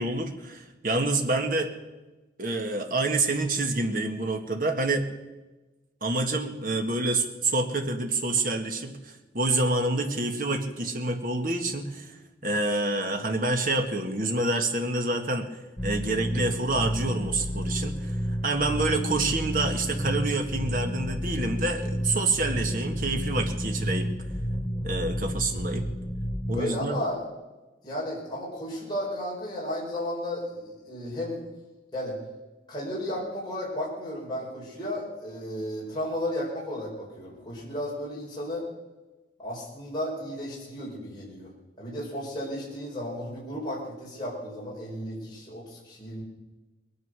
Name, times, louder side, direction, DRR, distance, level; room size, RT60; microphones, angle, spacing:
voice 1, 0.0-1.7 2.4-5.1 6.0-12.2 12.4-18.2 18.4-24.1 24.8-25.8 26.5-27.0, right 2 dB, 50° right, 4 dB, 1.7 m, -27 dB
sound 1, 15.8-26.6, equal, 5° left, 0.9 m, -31 dB
voice 2, 26.5-27.2 27.8-31.4 31.9-32.2 32.7-38.7 39.4-41.5 41.8-46.2, left 1 dB, 25° left, -5 dB, 4.7 m, -34 dB
21.0 x 9.9 x 6.2 m, 1.1 s
head